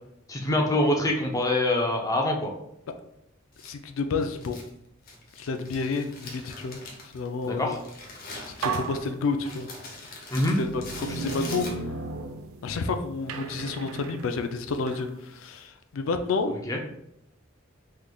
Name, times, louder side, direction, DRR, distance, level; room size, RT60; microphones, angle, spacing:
voice 1, 0.3-2.5 7.5-7.8 10.3-10.6 16.5-16.8, left 1 dB, 15° left, 0 dB, 0.5 m, -25 dB
Crumpling crinkling, 3.5-12.2, left 3 dB, 50° left, 0.8 m, -44 dB
voice 2, 3.6-4.6 5.4-6.8 7.1-7.8 8.6-9.7 10.4-11.8 12.6-16.5, left 4 dB, 70° left, 8 dB, 0.4 m, -30 dB
sound 1, 8.0-8.2 8.6-9.9 10.5-12.9 13.3-15.1, right 5 dB, 85° right, 0.3 m, -35 dB
3.7 x 3.1 x 2.2 m, 0.78 s
head